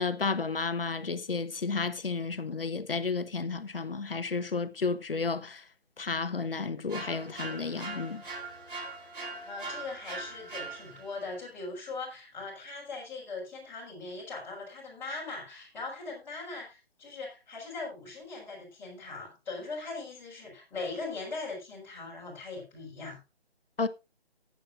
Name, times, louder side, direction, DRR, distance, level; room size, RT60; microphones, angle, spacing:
voice 1, 0.0-5.6 6.0-8.2 23.8-23.9, left 4 dB, 65° left, 1.0 m, -32 dB
sound 1, 6.9-11.2, right 3 dB, 55° right, 3.6 m, -41 dB
voice 2, 9.2-23.2, left 3 dB, 5° left, 4.9 m, -40 dB
18.5 x 8.7 x 2.5 m
figure-of-eight pair, 145°, 31 cm